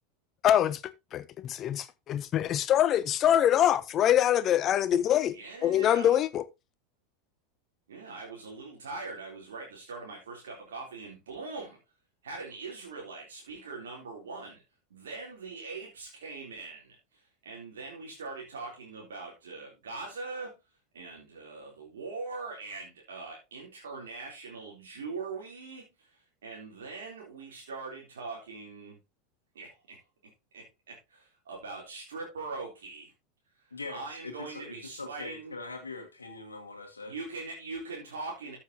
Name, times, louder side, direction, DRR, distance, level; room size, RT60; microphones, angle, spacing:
voice 1, 0.4-6.5, left 11 dB, 35° left, 0.9 m, -25 dB
voice 2, 5.3-6.2 7.9-11.8 12.2-14.6 14.9-20.6 20.9-29.0 29.5-33.1 33.5-35.5 37.1-38.6, right 3 dB, 70° right, 3.6 m, -42 dB
voice 3, 33.7-37.1, left 3 dB, 85° left, 1.7 m, -42 dB
13.5 x 7.3 x 3.0 m
figure-of-eight pair, 85°, 0 cm